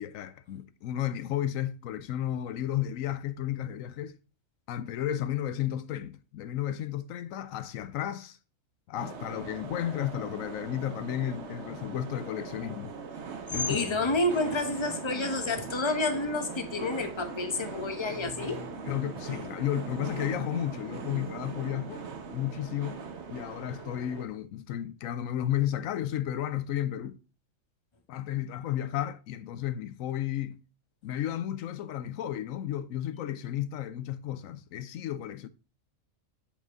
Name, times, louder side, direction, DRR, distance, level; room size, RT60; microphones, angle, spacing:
voice 1, 0.0-4.2 4.7-8.4 8.9-12.9 13.5-13.8 18.9-22.0 22.3-23.0 23.3-27.2 28.1-30.6 31.0-35.5, left 11 dB, 80° left, 1.0 m, -33 dB
sound 1, 9.0-24.3, right 5 dB, 60° right, 1.3 m, -40 dB
voice 2, 13.7-18.8, left 2 dB, 25° left, 1.0 m, -29 dB
7.3 x 5.4 x 4.6 m
omnidirectional pair, 1.4 m